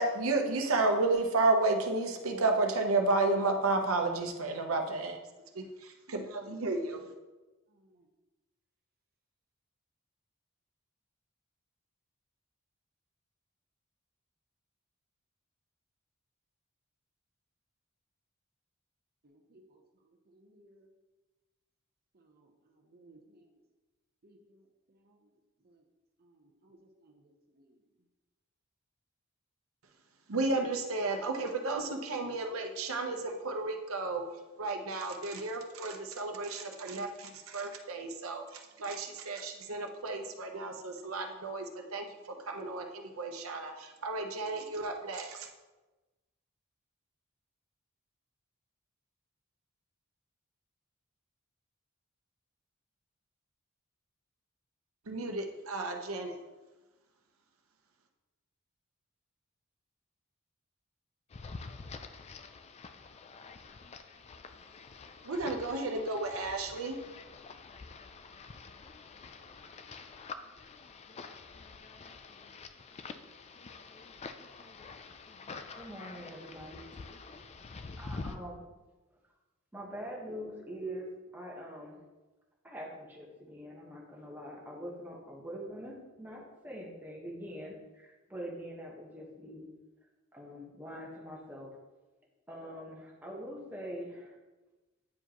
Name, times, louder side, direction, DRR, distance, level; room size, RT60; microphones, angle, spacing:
voice 1, 0.0-5.2 5.5-7.0 30.3-34.2 34.6-45.5 55.0-56.4 65.2-67.0, right 3 dB, 90° right, 4 dB, 0.9 m, -32 dB
voice 2, 7.7-8.1 19.2-20.9 22.1-23.6 24.2-25.3 25.6-25.8 26.2-27.8, right 1 dB, 50° right, 2 dB, 0.8 m, -63 dB
sound 1, 61.3-78.4, left 4 dB, 30° left, 0.4 m, -47 dB
voice 3, 75.7-76.9 78.0-78.6 79.7-82.0 82.6-89.7 90.3-91.7 92.5-94.4, equal, 10° right, -2 dB, 1.3 m, -44 dB
9.4 x 4.7 x 3.0 m, 1.2 s
head